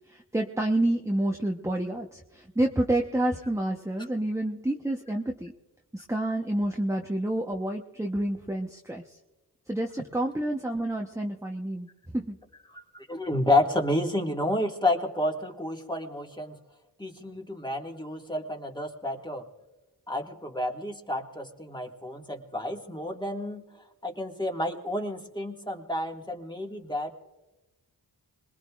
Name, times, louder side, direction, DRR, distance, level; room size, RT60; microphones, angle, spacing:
voice 1, 0.1-5.5 5.9-9.0 9.7-12.4, right 1 dB, 5° right, 0 dB, 1.1 m, -29 dB
voice 2, 12.7-16.6 17.0-19.4 20.1-23.6 24.0-27.1, left 1 dB, 10° left, 2 dB, 2.1 m, -30 dB
26.5 x 20.5 x 2.5 m, 1.0 s
cardioid pair, 45°, 40 cm